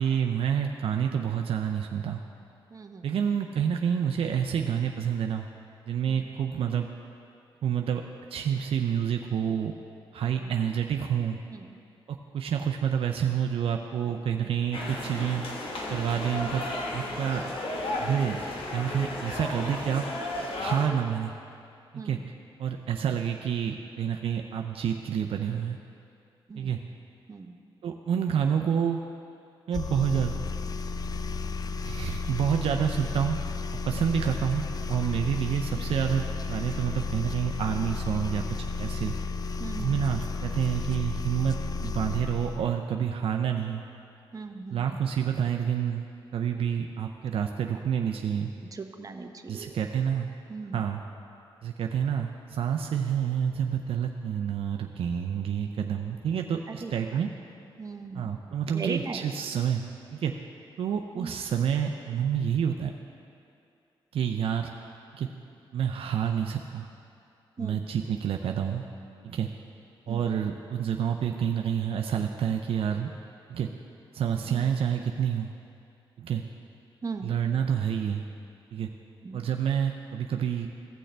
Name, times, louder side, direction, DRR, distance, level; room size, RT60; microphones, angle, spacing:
voice 1, 0.0-2.2 3.0-5.5 5.9-6.9 7.6-8.0 8.3-9.7 10.1-11.4 12.1-15.4 15.9-17.4 18.0-18.4 18.7-20.1 20.6-21.3 22.0-22.2 22.6-25.8 26.6-26.8 27.8-29.0 29.7-30.3 31.8-33.4 33.8-36.2 36.5-38.4 38.8-39.1 39.8-43.8 44.7-46.0 46.3-48.5 49.5-50.3 50.7-51.0 51.6-57.3 58.1-59.8 60.1-60.4 60.8-62.9 64.1-64.7 65.2-65.3 65.7-66.9 67.6-68.8 69.2-69.5 70.1-73.1 73.5-73.7 74.1-75.5 76.2-76.4 77.2-78.2 78.7-78.9 79.3-80.7, right 8 dB, 70° right, 3 dB, 0.5 m, -28 dB
voice 2, 2.7-3.2 6.1-6.2 10.4-10.6 11.5-11.8 14.9-15.2 22.0-22.2 26.5-26.8 27.3-27.6 35.7-35.8 39.6-40.1 44.3-45.0 48.7-49.8 50.5-50.8 56.7-57.2 57.8-58.3 58.7-59.3 61.1-61.3 67.6-67.8 70.1-70.2 74.5-74.7 77.0-77.3 79.2-79.5, right 4 dB, 35° right, 5 dB, 0.8 m, -39 dB
sound 1, 14.7-20.9, left 2 dB, 65° left, 1.3 m, -34 dB
sound 2, 29.7-42.7, left 4 dB, 40° left, 0.4 m, -33 dB
16.0 x 6.3 x 3.4 m, 2.5 s
cardioid pair, 65°, 10 cm